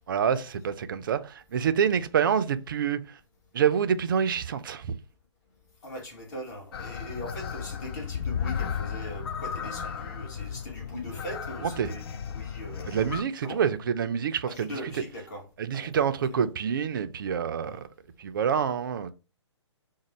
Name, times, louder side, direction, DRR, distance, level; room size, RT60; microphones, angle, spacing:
voice 1, 0.1-3.2 3.5-4.9 11.6-11.9 12.9-15.0 15.6-17.9 18.2-19.1, right 7 dB, 45° right, 0.4 m, -27 dB
voice 2, 5.8-13.0 13.4-13.6 14.5-15.5 15.7-16.1 17.6-17.8, left 1 dB, 35° left, 1.2 m, -40 dB
sound 1, 6.7-13.2, left 7 dB, 55° left, 0.4 m, -34 dB
5.0 x 2.1 x 3.0 m
figure-of-eight pair, 130°, 15 cm